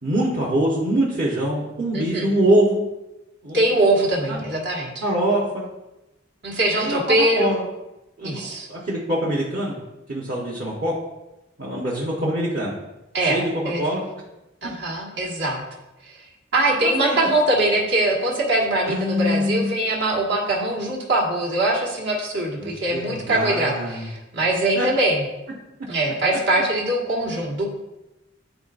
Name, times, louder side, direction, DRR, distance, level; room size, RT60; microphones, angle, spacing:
voice 1, 0.0-2.8 3.4-3.6 4.3-4.4 5.0-5.6 6.7-7.0 7.3-7.6 8.2-9.8 10.1-10.9 11.6-12.7 13.2-13.5 13.8-14.0 17.0-17.2 18.9-19.7 22.6-24.1 24.7-24.9, right 1 dB, 45° right, -6 dB, 1.1 m, -23 dB
voice 2, 1.9-2.3 3.5-5.0 6.4-7.6 8.2-8.7 13.1-13.8 14.6-15.6 16.0-16.1 16.5-25.2 25.9-27.8, right 1 dB, 65° right, -2 dB, 1.6 m, -22 dB
10.0 x 4.0 x 2.6 m, 0.98 s
head